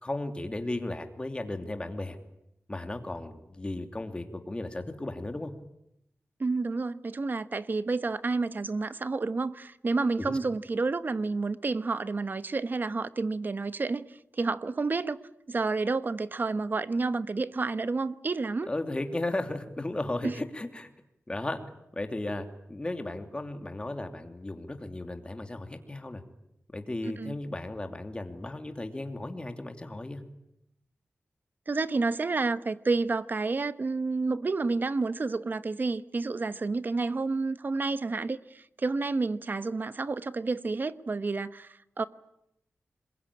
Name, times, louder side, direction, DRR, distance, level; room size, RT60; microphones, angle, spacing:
voice 1, 0.0-2.2 2.7-5.5 10.2-10.4 18.7-20.9 21.3-21.6 21.9-26.2 26.7-30.2, left 2 dB, 20° left, 2.8 m, -35 dB
voice 2, 6.4-15.2 15.5-18.7 20.2-20.4 27.0-27.3 31.7-42.0, right 3 dB, 45° right, 1.1 m, -30 dB
26.5 x 22.0 x 10.0 m
wide cardioid pair, 120°, 5 cm